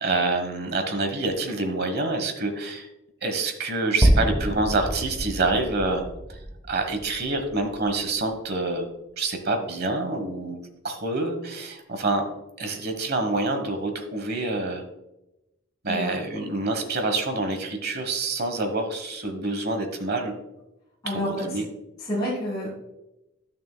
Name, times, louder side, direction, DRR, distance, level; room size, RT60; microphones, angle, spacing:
voice 1, 0.0-2.9 3.2-6.0 6.3-6.4 6.7-8.9 9.2-12.2 12.6-14.8 15.8-20.3 21.1-21.6, right 2 dB, 50° right, 6 dB, 1.2 m, -27 dB
sound 1, 4.0-8.2, right 1 dB, 10° right, 0.6 m, -26 dB
voice 2, 21.0-21.4 22.0-22.8, equal, 20° left, -9 dB, 2.4 m, -28 dB
11.5 x 6.5 x 2.2 m, 0.94 s
head